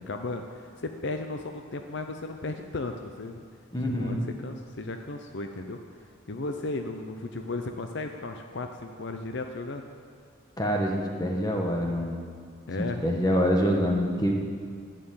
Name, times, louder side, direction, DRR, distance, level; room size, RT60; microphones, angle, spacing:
voice 1, 0.1-3.4 3.9-5.8 6.3-9.9 12.7-13.0, left 2 dB, 55° left, 5 dB, 0.7 m, -35 dB
voice 2, 3.7-4.3 10.6-12.2 12.8-14.3, equal, 20° left, 1 dB, 1.4 m, -26 dB
11.5 x 9.3 x 8.7 m, 2.1 s
head